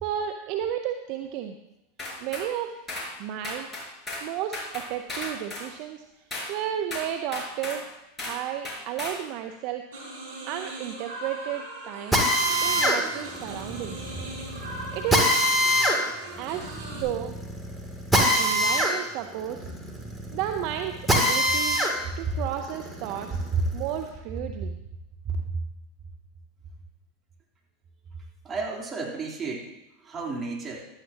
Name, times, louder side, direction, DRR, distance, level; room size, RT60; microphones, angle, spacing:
voice 1, 0.0-1.6 2.2-2.8 3.2-3.7 4.2-6.1 6.5-7.9 8.2-9.8 10.5-12.2 12.6-14.1 14.9-15.3 16.4-17.3 18.1-19.7 20.3-21.8 22.2-23.4 23.7-24.8, right 10 dB, 55° right, 5 dB, 0.8 m, -32 dB
sound 1, 2.0-2.5 2.9-3.1 3.4-4.3 4.5-5.7 6.3-6.5 6.9-7.8 8.2-8.4 8.7-9.2, left 2 dB, 20° left, 5.1 m, -35 dB
sound 2, 9.9-17.0, right 2 dB, 75° right, 4.8 m, -40 dB
Drill, 12.1-22.0 22.4-24.0, equal, ahead, 2.9 m, -24 dB
voice 2, 23.3-23.6 25.2-25.4 28.4-29.7 30.0-30.8, right 4 dB, 25° right, -3 dB, 3.6 m, -31 dB
15.5 x 12.5 x 3.0 m, 0.90 s
hypercardioid pair, 90°, 0 cm